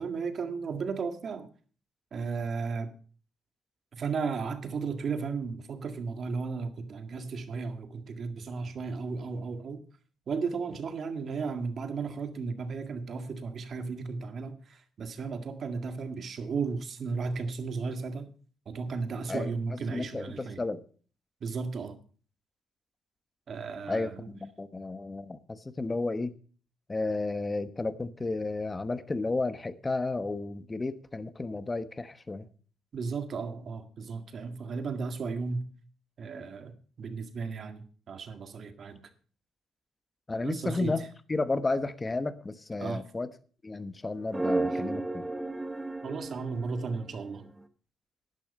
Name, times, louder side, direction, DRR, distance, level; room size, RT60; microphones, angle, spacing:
voice 1, 0.0-1.5 2.1-2.9 3.9-9.8 10.3-18.3 18.7-20.6 21.4-22.0 23.5-24.3 32.9-35.7 36.2-39.0 40.4-40.9 42.8-43.0 46.0-47.5, right 4 dB, 55° right, 1.8 m, -34 dB
voice 2, 19.9-20.8 23.9-26.3 26.9-32.5 40.3-43.3 43.6-45.3, left 3 dB, 20° left, 1.1 m, -32 dB
sound 1, 44.3-47.6, right 2 dB, 15° right, 1.1 m, -33 dB
11.0 x 11.0 x 5.4 m
cardioid pair, 90°, 0 cm